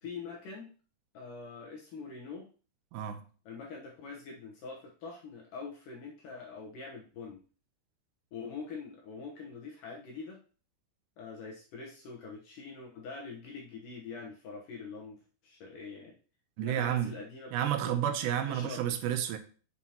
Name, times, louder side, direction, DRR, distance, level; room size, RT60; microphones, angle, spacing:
voice 1, 0.0-0.7 1.1-2.5 3.5-7.4 8.3-10.4 11.2-16.1 16.6-18.0 18.5-18.8, left 4 dB, 65° left, 2.2 m, -44 dB
voice 2, 16.6-17.1 17.5-19.4, right 10 dB, 80° right, 2.9 m, -30 dB
8.5 x 8.1 x 2.9 m
omnidirectional pair, 5.0 m